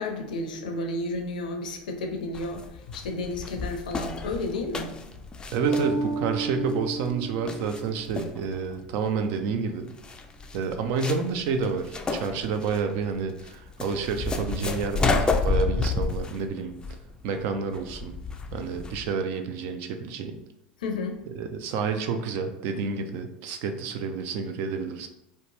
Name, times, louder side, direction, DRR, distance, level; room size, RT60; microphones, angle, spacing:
voice 1, 0.0-5.2 20.8-21.2, left 2 dB, 75° left, 3 dB, 0.5 m, -32 dB
sound 1, 2.3-19.1, left 3 dB, 20° left, 0.3 m, -31 dB
voice 2, 5.5-9.9 10.5-16.7 17.2-18.2 18.5-20.4 21.4-25.1, right 5 dB, 60° right, 7 dB, 0.4 m, -29 dB
Bass guitar, 5.6-8.3, right 3 dB, 75° right, 1.0 m, -31 dB
2.8 x 2.2 x 2.8 m, 0.87 s
hypercardioid pair, 80°, 4 cm